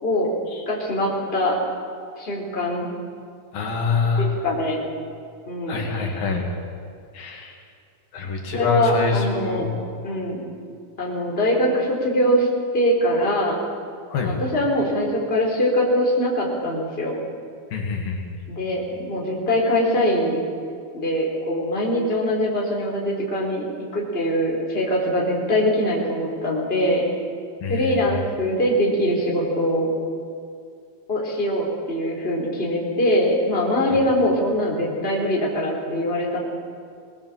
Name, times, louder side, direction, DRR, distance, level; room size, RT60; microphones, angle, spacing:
voice 1, 0.0-0.3 0.7-1.6 2.2-2.9 4.2-4.8 5.5-5.9 8.5-9.7 10.0-10.4 11.0-12.5 12.7-13.6 14.2-17.2 18.5-20.4 20.9-27.0 27.7-29.9 31.1-36.4, equal, 15° left, -2 dB, 4.0 m, -22 dB
voice 2, 3.5-4.3 5.7-6.5 7.1-7.6 8.1-9.6 14.1-14.3 17.7-18.2 27.6-28.1, left 4 dB, 75° left, 1 dB, 4.1 m, -25 dB
23.5 x 19.5 x 7.5 m, 2.3 s
omnidirectional pair, 4.1 m